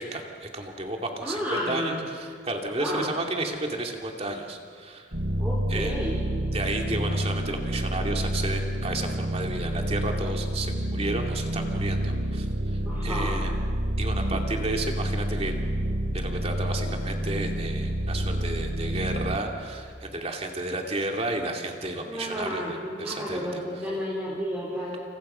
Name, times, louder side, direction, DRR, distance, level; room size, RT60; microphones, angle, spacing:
voice 1, 0.0-5.1 5.7-5.9 6.5-13.5 14.0-15.6 16.1-23.5, right 2 dB, 30° right, 2 dB, 2.6 m, -32 dB
voice 2, 1.2-1.9 2.8-3.1 5.4-6.2 12.8-13.4 14.1-14.2 22.0-25.0, equal, 10° right, -6 dB, 4.3 m, -31 dB
sound 1, 5.1-19.4, right 1 dB, 70° right, 3.2 m, -28 dB
29.0 x 28.5 x 5.7 m, 2.1 s
head